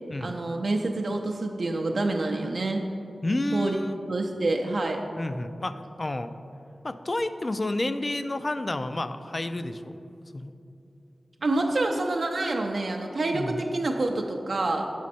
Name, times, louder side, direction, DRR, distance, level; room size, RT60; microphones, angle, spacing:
voice 1, 0.2-2.8 3.5-3.8 4.1-5.0 11.4-14.9, right 2 dB, 65° right, 2 dB, 0.4 m, -27 dB
voice 2, 3.2-4.0 5.2-6.3 6.8-10.0 10.3-10.5 13.3-13.6, left 1 dB, 40° left, 11 dB, 0.3 m, -30 dB
6.3 x 5.2 x 4.1 m, 2.7 s
cardioid pair, 55°, 0 cm